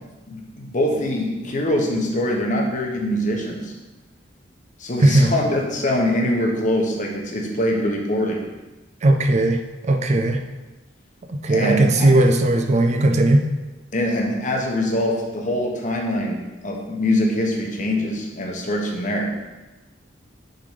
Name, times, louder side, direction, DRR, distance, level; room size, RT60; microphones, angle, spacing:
voice 1, 0.3-3.7 4.8-8.4 11.5-12.1 13.9-19.3, left 1 dB, 45° left, 1 dB, 1.1 m, -23 dB
voice 2, 9.0-10.4 11.3-13.4, right 1 dB, 40° right, 6 dB, 0.4 m, -17 dB
6.6 x 3.9 x 4.9 m, 1.1 s
head